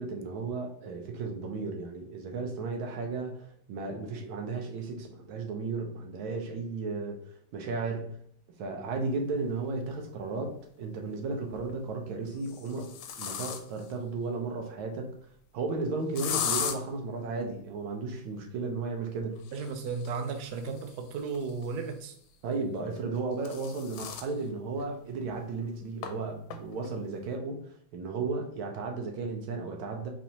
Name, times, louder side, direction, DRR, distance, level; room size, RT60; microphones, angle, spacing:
voice 1, 0.0-7.2 7.5-8.2 8.6-12.9 13.2-15.1 15.5-19.4 22.4-30.1, right 3 dB, 90° right, 1.6 m, -34 dB
sound 1, 9.8-9.9 11.3-11.7 12.3-13.9 16.2-16.8 19.4-22.0 23.0-24.3 24.8-24.9 25.2-25.3 26.0-26.1 26.5-26.9, left 8 dB, 75° left, 1.2 m, -37 dB
voice 2, 19.5-22.1, right 5 dB, 70° right, 1.1 m, -34 dB
4.2 x 3.2 x 2.8 m
omnidirectional pair, 2.2 m